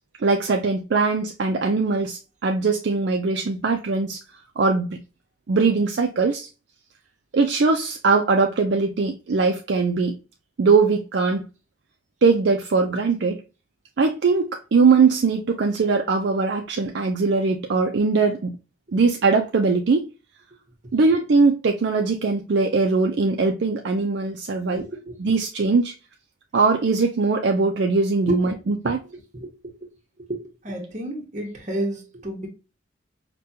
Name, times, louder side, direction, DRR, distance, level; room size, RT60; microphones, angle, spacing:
voice 1, 0.2-4.2 4.6-5.0 5.5-6.5 7.3-10.2 10.6-11.4 12.2-13.4 14.0-18.6 18.9-20.1 20.9-24.8 25.2-25.9 26.5-29.0, right 4 dB, 60° right, 0.4 m, -21 dB
voice 2, 24.7-25.2 28.3-28.5 28.8-28.9 29.3-29.9 30.2-32.5, right 1 dB, 40° right, 1.0 m, -31 dB
5.1 x 2.2 x 2.7 m
head